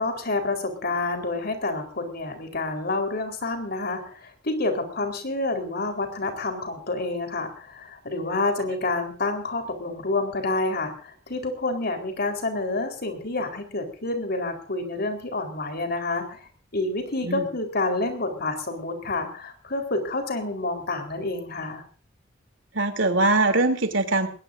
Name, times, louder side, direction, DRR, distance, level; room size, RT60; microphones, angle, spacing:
voice 1, 0.0-16.4 16.7-21.8, left 2 dB, 55° left, 5 dB, 4.2 m, -28 dB
voice 2, 22.7-24.3, right 2 dB, 70° right, 6 dB, 3.2 m, -22 dB
21.0 x 20.5 x 2.7 m, 0.40 s
head